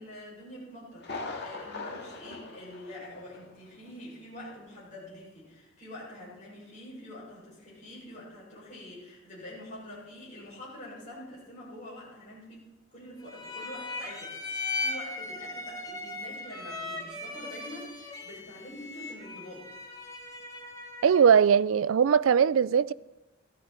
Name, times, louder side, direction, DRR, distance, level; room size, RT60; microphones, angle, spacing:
voice 1, 0.0-12.6 12.9-19.7, left 1 dB, 40° left, 6.8 m, -45 dB
Thunder, 1.0-3.6 3.9-4.0 4.5-4.6, left 3 dB, 55° left, 2.1 m, -41 dB
sound 1, 13.3-21.4, left 3 dB, 20° left, 1.9 m, -38 dB
voice 2, 21.0-22.9, right 7 dB, 80° right, 0.4 m, -20 dB
16.0 x 13.0 x 4.4 m
head